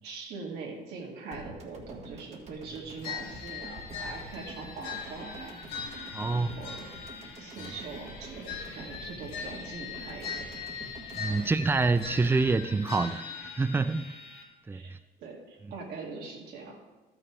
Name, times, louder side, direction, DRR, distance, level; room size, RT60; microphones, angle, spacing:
voice 1, 0.0-5.5 6.2-6.8 7.4-10.4 11.3-11.5 14.7-14.9 15.2-16.8, right 4 dB, 75° right, -1 dB, 2.3 m, -42 dB
sound 1, 1.3-13.6 13.9-14.0, right 2 dB, 40° right, 1.7 m, -47 dB
sound 2, 3.0-14.4, left 5 dB, 75° left, 2.2 m, -41 dB
voice 2, 6.1-6.5 11.2-13.3 13.6-14.1 14.7-15.0, right 3 dB, 15° right, 13 dB, 0.4 m, -26 dB
12.5 x 6.0 x 4.6 m, 1.2 s
cardioid pair, 110°, 17 cm